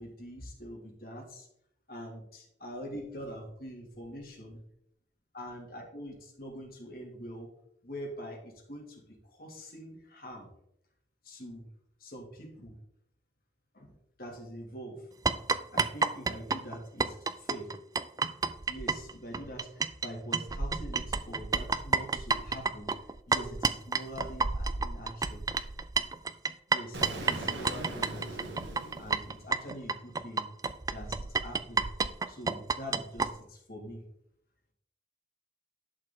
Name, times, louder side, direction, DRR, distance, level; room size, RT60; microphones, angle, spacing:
voice 1, 0.0-1.5 1.9-4.6 5.3-7.5 7.8-10.5 11.2-11.7 12.0-12.8 13.7-15.1 15.7-17.7 18.7-22.9 23.3-25.5 26.7-28.6 29.0-30.5 30.9-31.9 32.3-34.0, equal, 55° left, 0 dB, 2.3 m, -44 dB
sound 1, 15.3-20.1 20.3-33.3, right 4 dB, 20° right, 0.3 m, -30 dB
Explosion, 26.9-29.8, right 1 dB, 80° right, 1.7 m, -41 dB
11.0 x 6.6 x 3.7 m, 0.75 s
head